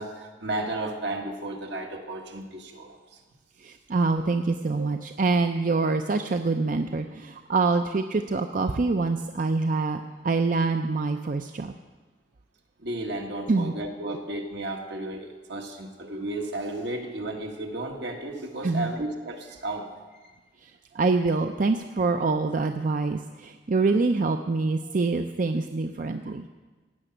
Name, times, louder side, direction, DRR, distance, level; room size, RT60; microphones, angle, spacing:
voice 1, 0.0-3.2 4.8-4.9 12.8-20.3, right 1 dB, 75° right, 2 dB, 1.7 m, -33 dB
voice 2, 3.6-11.7 13.5-13.7 18.6-18.9 20.6-26.4, right 3 dB, 45° right, 7 dB, 0.5 m, -25 dB
16.0 x 6.0 x 8.8 m, 1.3 s
head